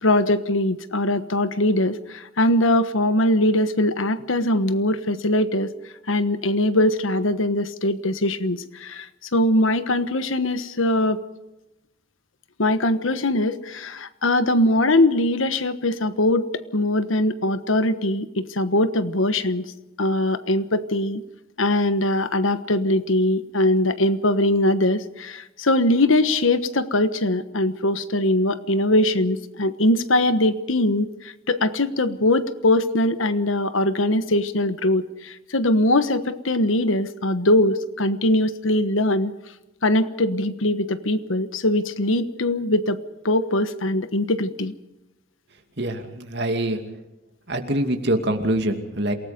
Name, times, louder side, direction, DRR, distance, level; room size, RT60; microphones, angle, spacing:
voice 1, 0.0-5.7 6.1-11.2 12.6-16.5 16.7-19.7 20.0-21.2 21.6-39.3 39.8-43.0 43.2-44.7, left 1 dB, 85° left, 12 dB, 1.3 m, -21 dB
voice 2, 45.8-46.8 47.5-49.1, right 1 dB, 55° right, 5 dB, 2.5 m, -24 dB
28.0 x 18.5 x 5.2 m, 0.95 s
head